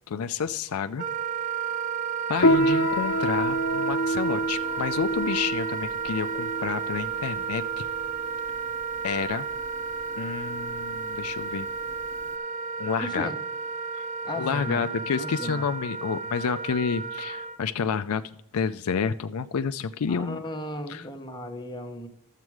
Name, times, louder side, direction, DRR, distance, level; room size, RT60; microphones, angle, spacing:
voice 1, 0.1-1.1 2.3-7.8 9.0-9.5 10.2-11.7 12.8-13.3 13.9-14.1 14.3-18.2 18.5-20.4 20.9-21.0, left 6 dB, 80° left, 10 dB, 0.4 m, -29 dB
Wind instrument woodwind instrument, 1.0-17.6, right 6 dB, 35° right, 0.4 m, -32 dB
Piano, 2.4-12.3, equal, 55° left, 0.8 m, -28 dB
voice 2, 13.0-13.3 14.3-15.7 20.1-22.1, left 1 dB, 20° left, 4 dB, 1.0 m, -36 dB
12.5 x 7.4 x 4.7 m, 0.79 s
head